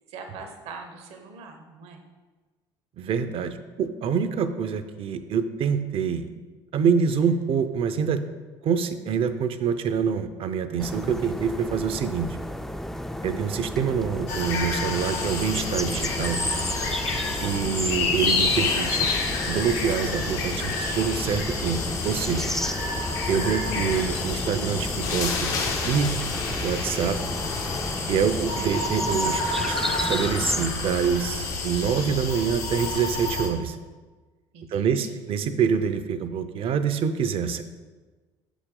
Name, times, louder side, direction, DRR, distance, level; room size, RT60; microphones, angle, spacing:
voice 1, 0.1-2.0 17.1-17.5 22.6-22.8 34.5-35.1, right 4 dB, 70° right, 4 dB, 0.9 m, -43 dB
voice 2, 3.0-6.3 6.7-8.2 8.6-12.4 13.2-16.4 17.4-19.1 19.5-22.5 23.3-25.5 25.9-26.1 26.6-27.2 28.1-33.8 34.7-37.6, right 7 dB, 55° right, 10 dB, 0.5 m, -26 dB
sound 1, 10.8-30.7, left 1 dB, 5° left, 0.3 m, -32 dB
sound 2, 14.3-33.5, left 3 dB, 85° left, 0.9 m, -29 dB
6.2 x 5.0 x 3.7 m, 1.3 s
supercardioid pair, 75°, 11 cm